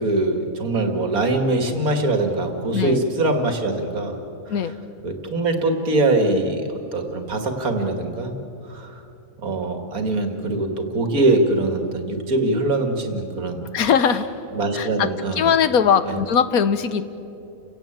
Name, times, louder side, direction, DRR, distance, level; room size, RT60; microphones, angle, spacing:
voice 1, 0.0-4.2 5.0-8.3 8.7-9.0 9.4-13.6 14.5-15.4 16.1-16.2, right 2 dB, 85° right, 5 dB, 2.6 m, -22 dB
voice 2, 13.7-14.3 14.7-17.0, left 7 dB, 85° left, 12 dB, 1.5 m, -20 dB
30.0 x 16.5 x 8.9 m, 2.8 s
omnidirectional pair, 1.5 m